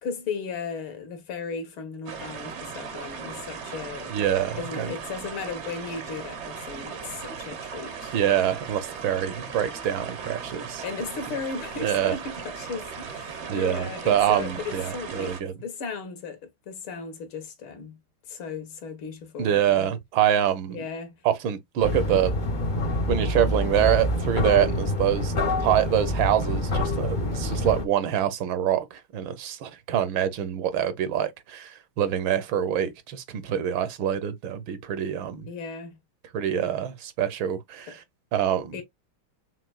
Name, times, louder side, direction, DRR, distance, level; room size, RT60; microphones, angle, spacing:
voice 1, 0.0-4.1 4.6-8.2 10.8-18.0 18.3-19.9 20.7-21.2 35.5-36.0 37.9-38.0 38.7-38.8, left 5 dB, 75° left, 2.0 m, -36 dB
sound 1, 2.1-15.4, right 6 dB, 55° right, 0.7 m, -38 dB
voice 2, 4.1-4.9 8.1-10.8 11.8-12.2 13.5-15.5 19.4-20.8 21.2-22.4 23.1-25.3 25.6-35.5 36.3-38.0 38.3-38.7, right 10 dB, 75° right, 1.4 m, -25 dB
sound 2, 21.8-27.9, left 1 dB, 60° left, 0.4 m, -26 dB
5.9 x 2.6 x 2.3 m
omnidirectional pair, 2.3 m